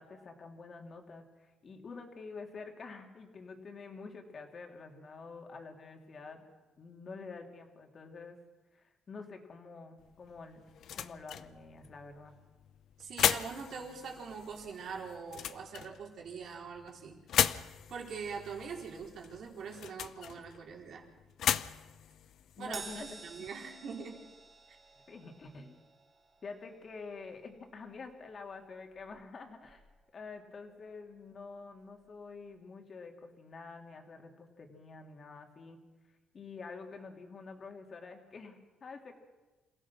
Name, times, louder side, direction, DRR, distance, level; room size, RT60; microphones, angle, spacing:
voice 1, 0.0-6.4 6.8-8.4 8.7-10.6 10.9-12.3 22.6-23.5 25.1-25.9 26.4-29.8 30.1-35.8 36.3-39.1, left 4 dB, 45° left, 3 dB, 3.3 m, -48 dB
sound 1, 10.0-23.5, left 10 dB, 70° left, 0.8 m, -37 dB
voice 2, 13.0-17.2 17.9-21.0 22.6-24.2, right 5 dB, 65° right, 0 dB, 4.5 m, -43 dB
Crash cymbal, 22.7-29.4 29.7-29.9 31.0-31.1, right 4 dB, 40° right, 5.6 m, -52 dB
27.5 x 16.5 x 6.2 m, 1.2 s
cardioid pair, 90°, 0 cm